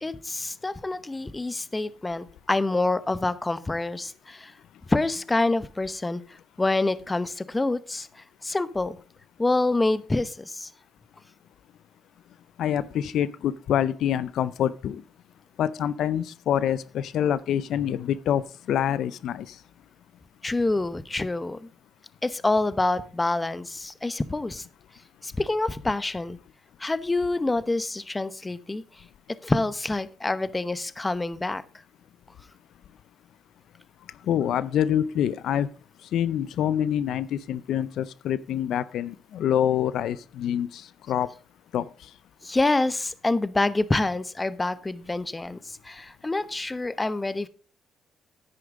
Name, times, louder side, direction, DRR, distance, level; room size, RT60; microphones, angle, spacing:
voice 1, 0.0-4.5 4.9-6.2 6.6-8.1 8.4-9.0 9.4-10.7 20.4-21.7 22.2-24.6 25.2-26.4 26.8-28.8 29.4-31.6 42.4-47.5, left 2 dB, 20° left, 0.8 m, -26 dB
voice 2, 12.6-15.0 15.6-18.4 18.7-19.6 34.3-35.7 36.1-41.3 41.7-41.9, left 10 dB, 75° left, 0.5 m, -26 dB
10.0 x 9.7 x 3.7 m
cardioid pair, 90°, 0 cm